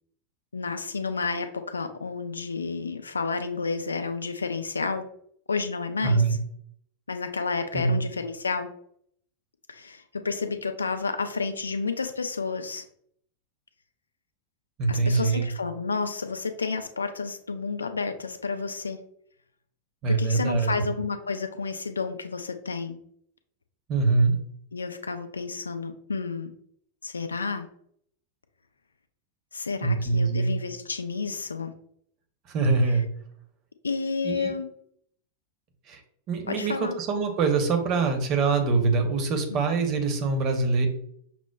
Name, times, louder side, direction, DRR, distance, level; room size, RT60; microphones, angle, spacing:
voice 1, 0.5-5.1 5.5-6.2 7.1-8.7 9.7-12.8 14.9-19.0 20.1-23.0 24.7-26.5 27.0-27.7 29.5-31.7 33.8-34.7 36.5-37.0 39.5-39.6, left 4 dB, 80° left, 8 dB, 0.3 m, -31 dB
voice 2, 6.0-6.4 7.7-8.0 14.8-15.5 20.0-20.7 23.9-24.3 29.8-30.5 32.5-33.1 34.2-34.5 35.9-36.0 36.3-40.9, right 4 dB, 40° right, 4 dB, 0.8 m, -24 dB
5.8 x 2.1 x 2.2 m, 0.66 s
figure-of-eight pair, 90°, 0 cm